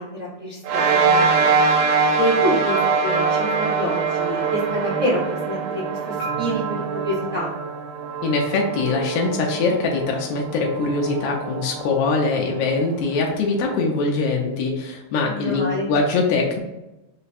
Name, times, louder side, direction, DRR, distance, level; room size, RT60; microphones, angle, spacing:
voice 1, 0.0-1.5 2.1-7.5 15.3-15.9, equal, 70° right, -8 dB, 0.7 m, -27 dB
sound 1, 0.6-13.4, right 5 dB, 85° right, 2.2 m, -23 dB
Marimba xylophone, 6.2-10.4, right 3 dB, 55° left, 1.5 m, -40 dB
voice 2, 8.2-16.6, left 3 dB, 75° left, 0 dB, 1.4 m, -22 dB
4.8 x 2.2 x 4.1 m, 0.97 s
omnidirectional pair, 3.3 m